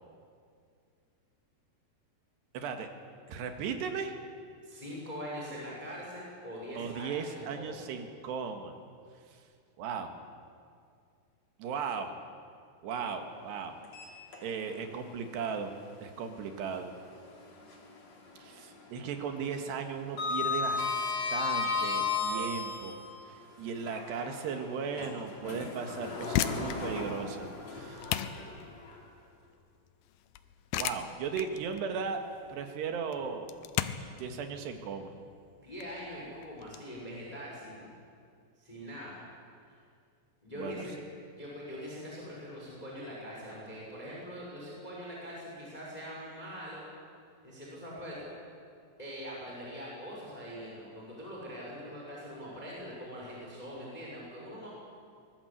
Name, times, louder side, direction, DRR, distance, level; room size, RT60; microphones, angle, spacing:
voice 1, 2.5-2.9 3.3-4.2 6.8-8.7 9.8-10.1 11.6-12.1 12.8-13.8 14.4-15.7 16.0-16.9 18.4-23.0 23.3-28.2 30.8-32.2 32.5-33.5 34.2-35.1 40.6-40.9, right 6 dB, 80° right, 5 dB, 3.8 m, -37 dB
voice 2, 4.6-7.8 35.6-37.9 38.6-39.2 40.4-40.9 41.3-46.9 47.4-48.3 49.0-54.7, equal, 10° left, -4 dB, 5.1 m, -43 dB
Sliding door, 13.8-14.8 15.2-15.3 17.0-18.1 18.3-18.7 19.0-23.1 23.7-28.9, left 4 dB, 45° left, 3.7 m, -35 dB
sound 1, 26.0-36.8, left 11 dB, 80° left, 2.4 m, -37 dB
23.5 x 20.5 x 8.3 m, 2.3 s
omnidirectional pair, 4.9 m